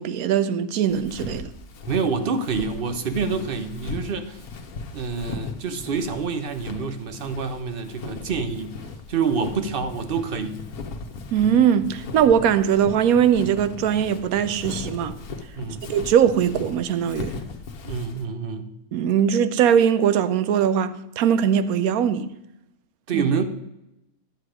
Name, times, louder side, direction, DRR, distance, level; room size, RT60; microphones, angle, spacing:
voice 1, 0.0-1.5 11.3-15.2 15.9-17.4 18.9-22.3 23.1-23.3, right 8 dB, 75° right, 1.1 m, -20 dB
Walk footsteps, 0.9-18.2, left 4 dB, 80° left, 1.5 m, -37 dB
voice 2, 1.9-4.4 4.9-8.7 9.1-10.6 15.6-15.8 17.8-18.7 23.1-23.4, right 5 dB, 45° right, 0.8 m, -27 dB
10.5 x 8.1 x 4.9 m
omnidirectional pair, 1.5 m